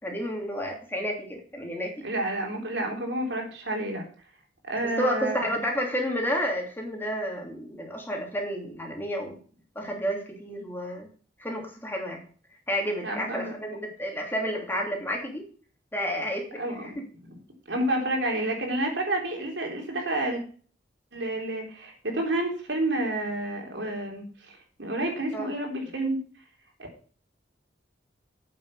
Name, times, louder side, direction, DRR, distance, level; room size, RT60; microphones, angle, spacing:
voice 1, 0.0-1.9 5.0-9.4 9.7-11.1 11.4-12.2 12.7-15.4 15.9-16.9 25.3-25.5, equal, 10° left, 0 dB, 2.7 m, -31 dB
voice 2, 2.0-4.0 4.6-5.5 13.0-13.8 16.6-17.0 17.7-20.4 21.1-26.2, right 1 dB, 75° right, 2 dB, 3.7 m, -30 dB
8.7 x 7.4 x 6.5 m, 0.42 s
head